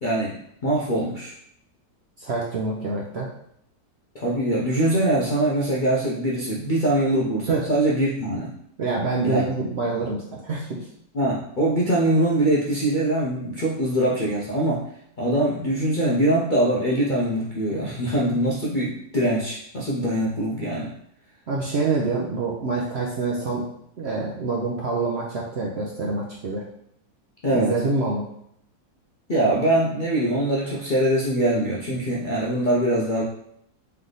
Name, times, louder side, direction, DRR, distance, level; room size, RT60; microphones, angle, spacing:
voice 1, 0.0-0.3 0.6-1.3 4.1-8.5 9.2-9.5 11.1-14.8 15.2-20.9 27.4-27.7 29.3-33.2, right 1 dB, 55° left, -5 dB, 0.5 m, -23 dB
voice 2, 2.2-3.3 7.5-7.6 8.8-10.8 21.5-23.7 24.0-26.6 27.5-28.2, right 3 dB, 60° right, -3 dB, 0.7 m, -26 dB
3.3 x 3.3 x 3.9 m, 0.72 s
omnidirectional pair, 1.7 m